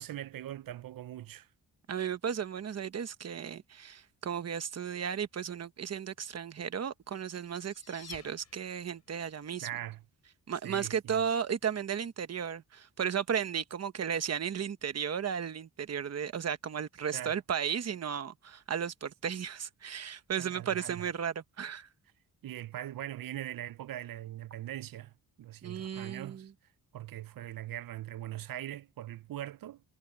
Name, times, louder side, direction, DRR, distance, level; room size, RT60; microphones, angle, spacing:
voice 1, 0.0-1.5 9.6-10.0 10.6-11.2 17.1-17.4 20.4-21.1 22.4-25.1 25.4-26.5 26.9-29.8, right 13 dB, 65° right, 0.5 m, -41 dB
voice 2, 1.9-9.7 10.5-21.9 25.6-26.5, right 8 dB, 40° right, 1.0 m, -34 dB
sound 1, 7.0-9.1, left 5 dB, 45° left, 5.1 m, -52 dB
wide cardioid pair, 170°, 38 cm